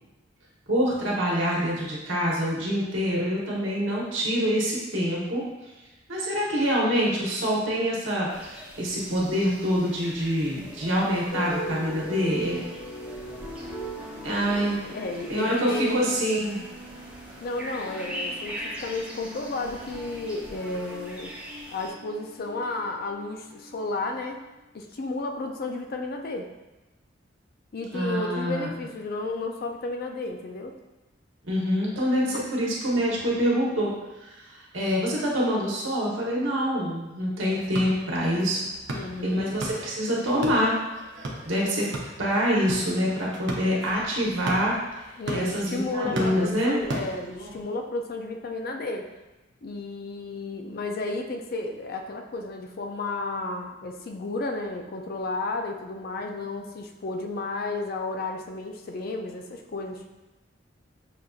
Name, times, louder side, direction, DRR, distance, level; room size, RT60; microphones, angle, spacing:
voice 1, 0.7-5.4 6.1-12.6 14.2-14.8 15.3-16.6 27.9-28.7 31.4-33.9 34.3-38.6 39.2-40.7 41.4-41.9 42.2-44.7 45.3-46.8, equal, 85° right, -4 dB, 1.1 m, -25 dB
sound 1, 8.3-21.9, equal, 5° right, 0.6 m, -42 dB
sound 2, 11.3-24.6, equal, 25° right, 1.0 m, -41 dB
voice 2, 14.8-16.1 17.4-21.4 21.7-24.4 24.7-26.5 27.7-30.8 32.2-32.4 38.9-39.4 45.2-49.1 49.6-60.0, left 2 dB, 50° left, 4 dB, 0.4 m, -32 dB
sound 3, 37.5-47.6, right 1 dB, 65° right, 0.6 m, -37 dB
5.9 x 2.6 x 2.4 m, 1.1 s
head